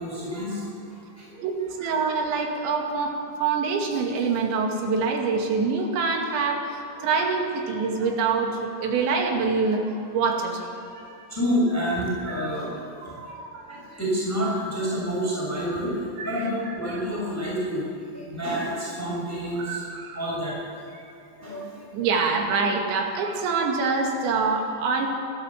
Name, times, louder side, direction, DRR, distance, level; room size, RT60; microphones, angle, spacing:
voice 1, 0.0-1.4 6.9-7.3 8.0-8.1 11.3-17.8 18.1-19.8 20.1-20.5 21.4-22.0, equal, 5° left, -5 dB, 5.9 m, -29 dB
voice 2, 1.4-3.1 3.4-9.8 10.1-10.7 12.3-12.5 13.0-13.8 16.2-17.0 19.5-20.2 21.9-25.1, right 4 dB, 90° right, 2 dB, 4.6 m, -26 dB
29.0 x 13.0 x 7.5 m, 2.6 s
omnidirectional pair, 5.1 m